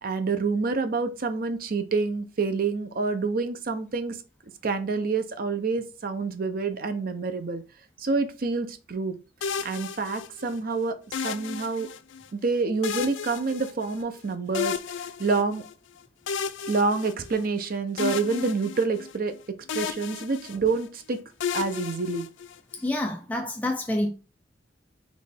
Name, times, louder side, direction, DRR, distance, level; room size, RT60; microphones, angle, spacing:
voice 1, 0.0-4.2 4.6-7.6 8.0-9.1 9.6-11.0 11.2-11.9 12.3-15.6 16.7-21.2 21.5-22.3, right 4 dB, 50° right, 0.6 m, -27 dB
sound 1, 9.4-10.6 11.1-12.3 12.8-14.2 14.5-15.7 16.3-17.6 18.0-19.4 19.7-20.9 21.4-22.8, left 6 dB, 90° left, 0.4 m, -33 dB
voice 2, 22.7-24.1, left 1 dB, 10° left, 0.4 m, -28 dB
4.1 x 3.1 x 3.4 m
head